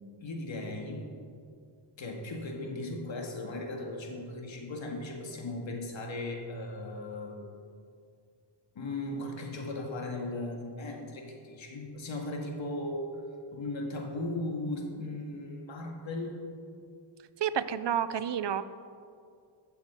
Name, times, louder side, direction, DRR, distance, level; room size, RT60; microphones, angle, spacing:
voice 1, 0.2-1.1 2.0-7.4 8.8-13.1 13.5-16.4, left 2 dB, 75° left, 1 dB, 2.0 m, -37 dB
voice 2, 17.4-18.6, right 9 dB, 65° right, 14 dB, 0.6 m, -30 dB
15.0 x 7.2 x 5.2 m, 2.3 s
cardioid pair, 55°, 46 cm